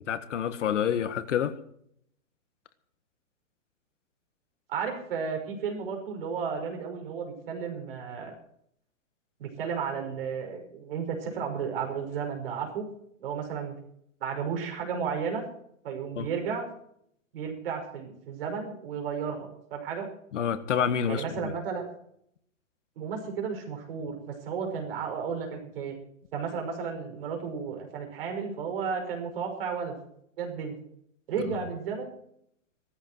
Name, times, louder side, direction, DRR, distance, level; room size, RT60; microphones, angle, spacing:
voice 1, 0.1-1.5 16.2-16.3 20.3-21.5, left 8 dB, 65° left, 11 dB, 1.7 m, -28 dB
voice 2, 4.7-8.3 9.4-12.8 13.2-13.7 14.2-15.4 15.8-16.7 17.3-20.1 21.1-21.8 23.0-26.0 26.3-30.0 30.4-30.8 31.3-32.1, right 6 dB, 45° right, 3 dB, 5.9 m, -33 dB
16.5 x 14.0 x 4.7 m, 0.69 s
hypercardioid pair, 175°, 39 cm